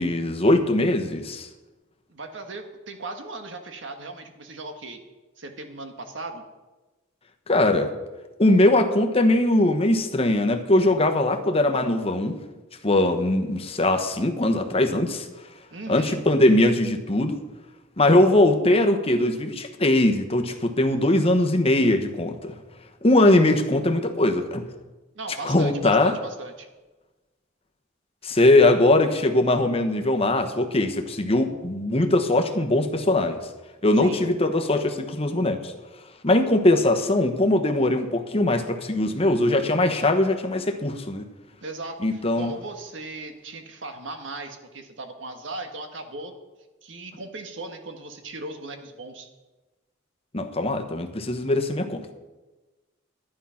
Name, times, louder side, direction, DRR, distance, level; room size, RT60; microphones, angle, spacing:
voice 1, 0.0-1.5 7.5-7.9 8.4-12.4 12.8-15.3 15.9-17.4 18.0-22.6 23.0-24.6 25.4-26.2 28.2-33.4 33.8-35.7 36.2-41.3 42.0-42.5 50.3-52.1, left 1 dB, 30° left, 5 dB, 1.1 m, -21 dB
voice 2, 2.1-5.0 5.4-6.5 15.7-16.2 25.1-26.7 34.0-34.2 41.6-46.3 46.8-49.3, right 2 dB, 70° right, 6 dB, 1.5 m, -37 dB
12.0 x 10.0 x 5.7 m, 1.2 s
head